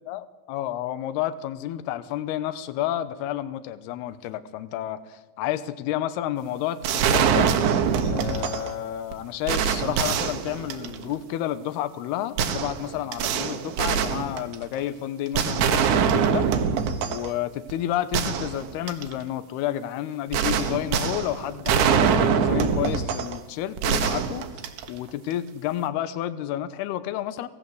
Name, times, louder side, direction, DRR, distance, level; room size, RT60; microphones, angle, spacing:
voice 1, 0.0-7.5 8.0-16.5 17.1-27.5, left 12 dB, 75° left, 13 dB, 2.6 m, -30 dB
sound 1, 6.8-8.7 9.1-9.2 9.5-11.1 12.4-14.8 15.4-17.3 17.7-17.8 18.1-19.1 20.3-23.4 23.8-25.1, right 7 dB, 75° right, 3.8 m, -24 dB
24.5 x 17.0 x 8.0 m, 1.1 s
omnidirectional pair, 5.5 m